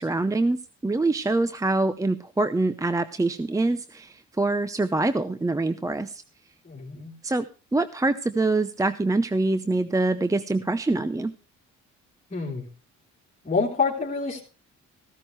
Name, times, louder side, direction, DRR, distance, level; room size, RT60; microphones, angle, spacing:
voice 1, 0.0-6.2 7.2-7.5 7.7-11.3, right 2 dB, 10° right, 12 dB, 0.7 m, -25 dB
voice 2, 6.6-7.1 12.3-12.7 13.4-14.4, left 4 dB, 25° left, -5 dB, 3.4 m, -27 dB
15.0 x 13.5 x 3.2 m, 0.35 s
cardioid pair, 90°, 30 cm